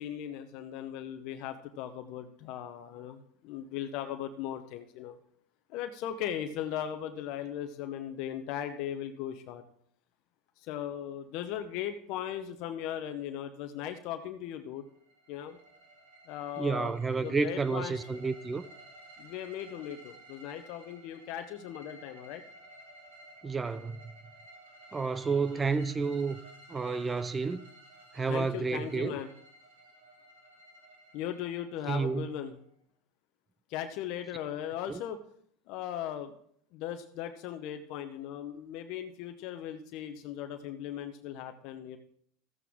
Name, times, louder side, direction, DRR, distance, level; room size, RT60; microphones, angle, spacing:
voice 1, 0.0-5.2 5.7-9.6 10.6-14.8 15.3-15.6 16.3-18.0 19.2-22.4 28.3-29.3 31.1-32.5 33.7-35.2 35.7-36.3 36.7-42.0, left 10 dB, 60° left, 0.8 m, -38 dB
sound 1, 14.8-32.7, right 1 dB, 90° right, 2.9 m, -54 dB
voice 2, 16.6-18.6 23.4-24.0 24.9-26.4 26.7-27.6 28.1-29.2 31.9-32.3 34.9-35.0, right 4 dB, 20° right, 0.5 m, -30 dB
13.5 x 8.4 x 3.6 m
hypercardioid pair, 95°, 0 cm